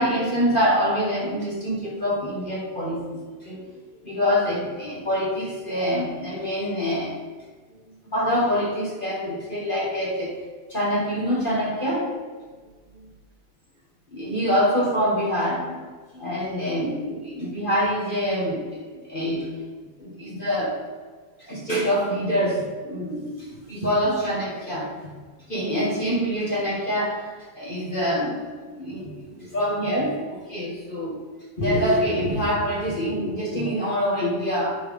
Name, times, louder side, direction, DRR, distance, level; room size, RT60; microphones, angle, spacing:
voice 1, 0.0-3.0 3.4-3.6 4.0-7.2 8.1-10.3 10.7-12.1 12.9-13.1 14.1-19.5 20.0-20.8 21.4-24.9 25.5-31.1 31.6-34.8, equal, 30° left, -4 dB, 1.4 m, -25 dB
9.3 x 4.8 x 5.3 m, 1.4 s
omnidirectional pair, 2.2 m